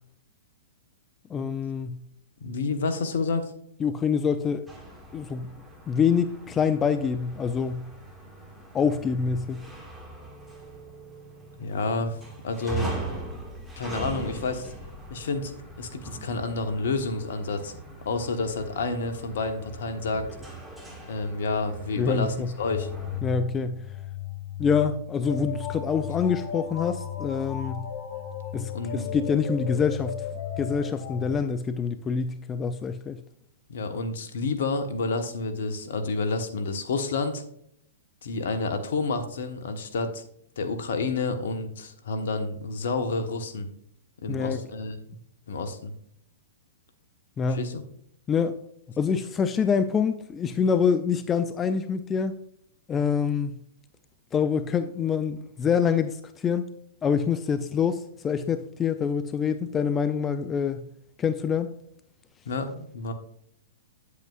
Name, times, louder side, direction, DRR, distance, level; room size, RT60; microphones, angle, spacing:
voice 1, 1.3-2.0 3.8-4.6 5.1-5.5 5.9-7.9 8.7-9.6 22.0-22.5 23.2-23.8 24.6-27.9 28.5-30.2 30.6-33.2 44.3-44.6 47.4-47.7 48.3-48.6 49.0-52.4 52.9-53.5 54.3-56.7 57.0-60.9 61.2-61.7, left 6 dB, 20° left, 0.4 m, -26 dB
voice 2, 2.4-3.5 11.6-12.2 12.4-13.0 13.8-14.7 15.1-15.5 15.8-17.7 18.0-20.3 21.1-22.9 28.7-29.1 33.7-37.4 38.2-40.2 40.6-43.7 44.2-45.0 45.5-45.9 47.5-47.8 62.4-63.1, left 3 dB, 65° left, 1.2 m, -29 dB
sound 1, 4.7-23.2, right 3 dB, 5° right, 1.9 m, -41 dB
sound 2, 22.6-31.3, left 9 dB, 45° left, 2.7 m, -35 dB
9.0 x 8.4 x 2.4 m
hypercardioid pair, 110°, 0 cm